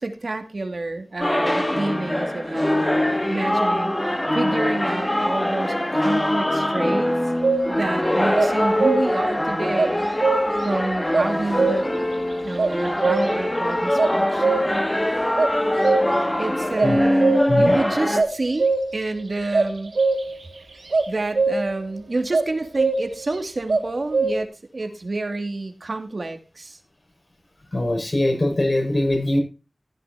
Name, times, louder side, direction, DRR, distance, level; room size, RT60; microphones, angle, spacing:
voice 1, 0.0-7.1 7.7-10.1 10.6-11.9 12.4-14.9 16.4-20.0 21.1-26.8, right 2 dB, 70° right, 6 dB, 2.3 m, -29 dB
sound 1, 1.2-18.2, left 1 dB, 20° left, 2.1 m, -23 dB
sound 2, 7.4-7.9 8.4-9.3 9.8-10.7 11.1-12.1 12.6-13.6 14.0-14.9 15.4-16.4 16.8-17.7 18.1-19.1 19.5-20.4 20.9-21.8 22.3-23.4 23.7-24.4, right 3 dB, 90° right, 2.0 m, -22 dB
voice 2, 27.7-29.4, left 1 dB, 55° left, 3 dB, 6.6 m, -22 dB
16.0 x 10.5 x 2.8 m, 0.30 s
cardioid pair, 40°, 0 cm